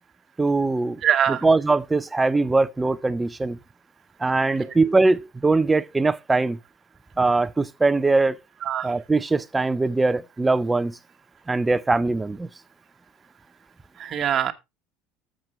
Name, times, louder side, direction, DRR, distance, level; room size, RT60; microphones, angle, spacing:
voice 1, 0.4-1.0 1.3-3.6 4.2-6.6 7.2-8.4 8.8-11.0 11.5-12.5, right 3 dB, 10° right, 0.5 m, -21 dB
voice 2, 1.0-1.4 4.6-4.7 8.6-9.0 14.0-14.5, right 10 dB, 35° right, 1.2 m, -23 dB
13.0 x 7.5 x 3.1 m
cardioid pair, 150°, 0 cm